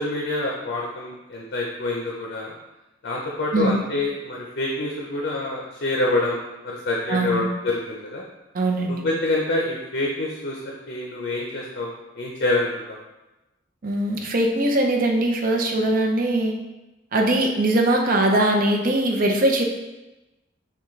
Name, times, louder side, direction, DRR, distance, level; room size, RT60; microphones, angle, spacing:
voice 1, 0.0-2.5 3.0-6.4 6.6-8.2 8.9-11.9 12.2-13.0, left 2 dB, 55° left, -2 dB, 0.5 m, -26 dB
voice 2, 7.1-7.5 8.5-9.0 13.8-16.5 17.1-19.6, right 1 dB, 50° right, 1 dB, 0.6 m, -21 dB
5.8 x 2.3 x 3.1 m, 1.0 s
head